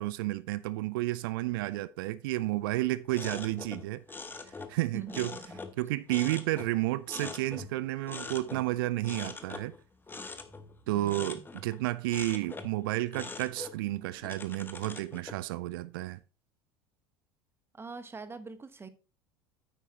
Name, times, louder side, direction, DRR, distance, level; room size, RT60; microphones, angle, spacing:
voice 1, 0.0-4.0 4.5-5.3 5.8-9.7 10.9-16.2, right 17 dB, 65° right, 0.4 m, -31 dB
sound 1, 3.1-5.8 6.1-7.8 8.1-8.7 9.0-11.8 12.1-12.8 13.1-15.4, left 4 dB, 15° left, 1.1 m, -43 dB
voice 2, 4.9-5.6 10.9-11.4 17.7-18.9, right 4 dB, 20° right, 1.1 m, -44 dB
9.4 x 8.2 x 2.9 m
figure-of-eight pair, 70°, 13 cm